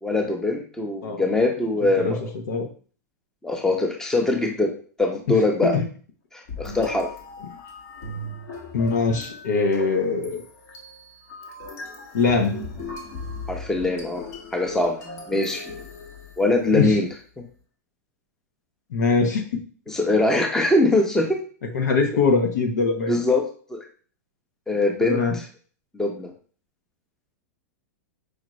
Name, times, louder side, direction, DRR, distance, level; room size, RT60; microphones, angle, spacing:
voice 1, 0.0-2.2 3.4-4.7 5.0-5.7 6.3-7.1 13.5-14.2 14.5-15.0 15.3-15.6 16.4-17.1 17.4-17.5 19.9-21.4 23.1-23.4 23.7-23.8 24.7-25.2 25.9-26.3, left 2 dB, 5° left, 2 dB, 0.7 m, -22 dB
voice 2, 5.3-5.8 8.7-10.4 12.1-12.6 16.7-17.0 18.9-19.6 21.7-23.2 25.0-25.4, left 4 dB, 85° left, 4 dB, 1.0 m, -22 dB
sound 1, 6.5-16.8, left 2 dB, 60° left, 1.2 m, -38 dB
5.1 x 2.5 x 3.1 m, 0.42 s
hypercardioid pair, 130°, 9 cm